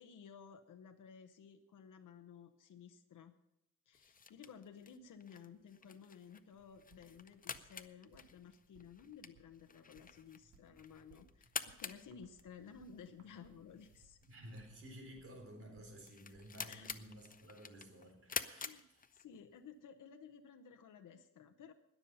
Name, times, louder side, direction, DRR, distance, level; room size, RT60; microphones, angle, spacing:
voice 1, 0.0-3.3 3.9-14.2 16.7-16.9 18.6-18.9 19.1-21.7, left 7 dB, 80° left, 6 dB, 0.9 m, -55 dB
sound 1, 3.9-19.6, left 5 dB, 30° left, 0.6 m, -49 dB
sound 2, 6.5-17.4, right 3 dB, 85° right, 2.8 m, -69 dB
voice 2, 14.3-19.1, equal, 45° right, 2 dB, 4.2 m, -54 dB
20.5 x 7.3 x 5.5 m, 0.83 s
wide cardioid pair, 155°, 31 cm